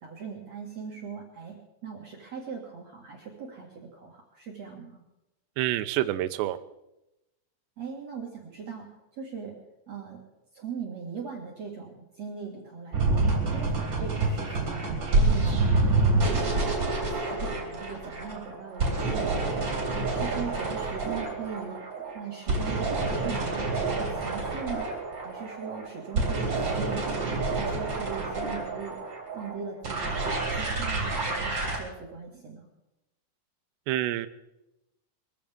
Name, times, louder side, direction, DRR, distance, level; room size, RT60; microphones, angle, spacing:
voice 1, 0.0-1.6 1.8-5.0 7.8-8.8 9.2-9.5 9.9-10.2 10.5-14.8 15.1-16.7 17.1-19.6 20.1-21.8 22.1-24.9 25.2-29.0 29.3-32.7, right 6 dB, 50° right, -2 dB, 2.1 m, -40 dB
voice 2, 5.6-6.6 33.9-34.3, right 14 dB, 85° right, 10 dB, 2.5 m, -27 dB
sound 1, 12.9-31.8, right 3 dB, 25° right, 3.7 m, -28 dB
23.0 x 15.0 x 3.6 m, 0.93 s
omnidirectional pair, 5.8 m